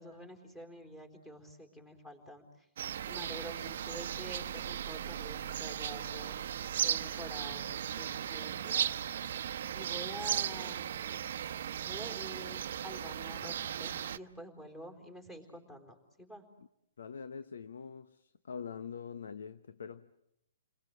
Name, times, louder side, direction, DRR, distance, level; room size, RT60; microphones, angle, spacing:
voice 1, 0.0-2.4 3.1-6.3 6.8-8.9 9.7-10.9 11.8-16.4, equal, 10° left, 3.9 m, -48 dB
sound 1, 2.8-14.2, right 9 dB, 60° right, 0.9 m, -36 dB
voice 2, 17.0-20.1, left 6 dB, 85° left, 1.0 m, -44 dB
30.0 x 21.5 x 7.7 m
hypercardioid pair, 160°, 0 cm